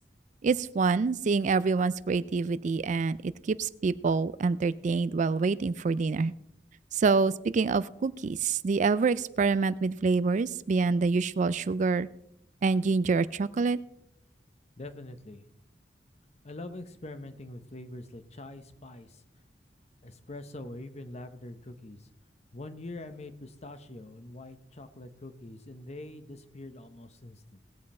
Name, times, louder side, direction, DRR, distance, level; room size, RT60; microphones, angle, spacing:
voice 1, 0.4-6.3 6.9-12.1 12.6-13.8, right 4 dB, 45° right, 17 dB, 0.4 m, -26 dB
voice 2, 14.8-15.4 16.4-19.2 20.0-22.1 22.5-27.6, left 2 dB, 40° left, 10 dB, 0.9 m, -44 dB
18.5 x 7.5 x 4.3 m, 0.79 s
head